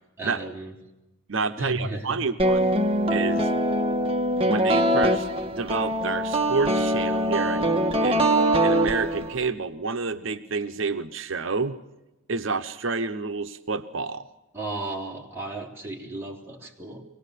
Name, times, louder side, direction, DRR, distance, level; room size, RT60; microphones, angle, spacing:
voice 1, 0.2-0.7 1.6-2.2 14.5-17.0, right 2 dB, 10° right, -2 dB, 3.5 m, -34 dB
voice 2, 1.3-2.8 3.1-3.5 4.4-8.3 8.6-11.8 12.3-14.3, right 4 dB, 70° right, 8 dB, 0.8 m, -29 dB
sound 1, 2.4-9.5, right 1 dB, 25° right, 1.3 m, -23 dB
24.0 x 18.5 x 8.2 m, 0.97 s
head